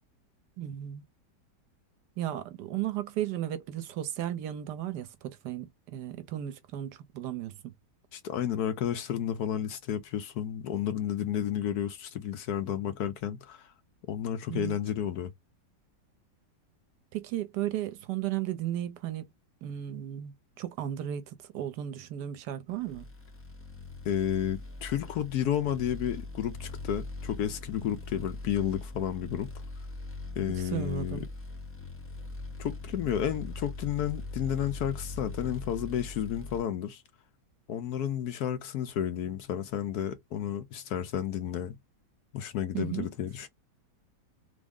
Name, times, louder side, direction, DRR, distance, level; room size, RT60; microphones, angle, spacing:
voice 1, 0.6-1.0 2.2-7.7 14.5-14.8 17.1-19.3 19.6-23.1 30.7-31.3 42.7-43.1, right 12 dB, 80° right, 1.2 m, -35 dB
voice 2, 8.1-13.7 14.1-15.3 24.0-29.5 30.4-31.2 32.6-37.0 37.7-41.8 42.3-43.5, left 10 dB, 70° left, 1.2 m, -32 dB
sound 1, 22.8-36.6, left 3 dB, 15° left, 0.4 m, -41 dB
3.6 x 2.0 x 3.5 m
omnidirectional pair, 1.9 m